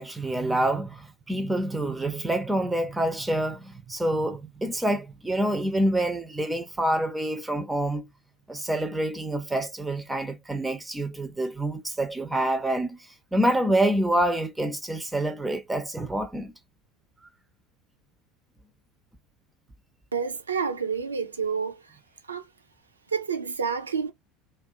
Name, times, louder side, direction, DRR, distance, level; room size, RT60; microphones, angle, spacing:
voice 1, 0.0-8.1 8.5-16.5, right 1 dB, 10° right, 0.4 m, -27 dB
voice 2, 20.1-21.8 22.3-22.5 23.1-24.1, right 6 dB, 80° right, 0.4 m, -29 dB
2.3 x 2.2 x 2.7 m
figure-of-eight pair, 70°, 0 cm